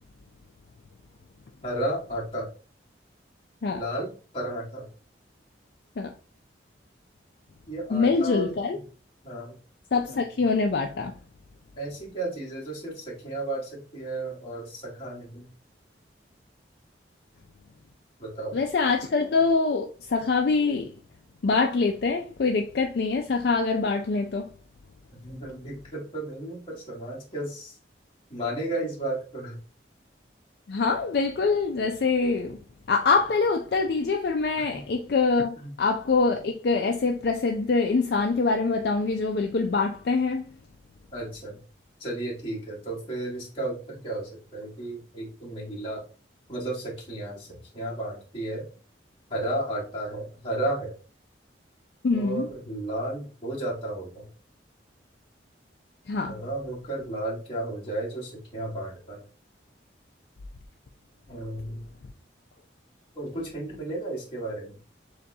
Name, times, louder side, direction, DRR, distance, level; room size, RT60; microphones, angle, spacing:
voice 1, 1.6-2.5 3.7-4.9 7.7-8.5 9.2-9.6 11.8-15.5 18.2-18.6 25.2-27.7 28.3-29.6 34.6-34.8 35.6-35.7 41.1-41.6 42.0-46.0 46.5-48.7 49.3-50.9 52.1-54.3 56.3-59.2 61.3-61.9 63.1-64.8, right 1 dB, 30° left, 1.6 m, -33 dB
voice 2, 7.9-8.8 9.9-11.1 18.5-20.9 21.4-24.5 30.7-32.6 32.9-40.5 52.0-52.5 56.1-56.4, left 4 dB, 60° left, 0.4 m, -24 dB
6.8 x 2.3 x 2.7 m
head